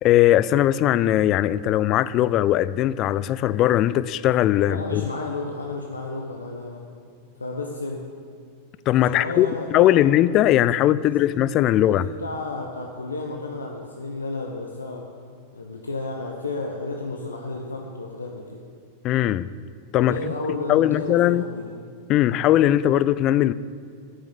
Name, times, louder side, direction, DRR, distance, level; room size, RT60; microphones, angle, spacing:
voice 1, 0.0-5.0 8.9-12.1 19.0-19.5 19.9-20.2 20.7-21.5 22.1-23.5, left 13 dB, 35° left, 0.3 m, -19 dB
voice 2, 4.7-6.8 7.4-8.1 9.0-10.0 10.7-15.1 15.5-18.6 20.0-21.7, left 3 dB, 75° left, 0.9 m, -32 dB
8.9 x 6.5 x 8.2 m
figure-of-eight pair, 90°, 0 cm